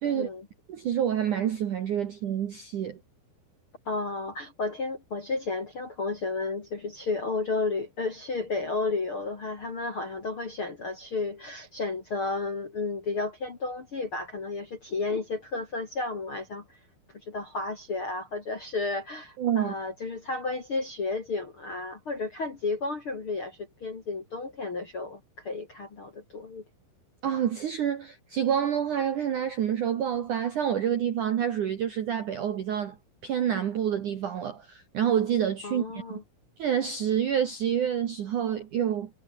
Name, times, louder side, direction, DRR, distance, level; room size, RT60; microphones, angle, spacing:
voice 1, 0.0-0.5 3.9-16.8 17.2-26.6 35.6-36.2, left 3 dB, 40° left, 2.0 m, -32 dB
voice 2, 0.7-3.0 19.4-19.7 27.2-33.0 33.2-36.0 36.6-39.1, right 9 dB, 65° right, 2.0 m, -28 dB
omnidirectional pair, 5.8 m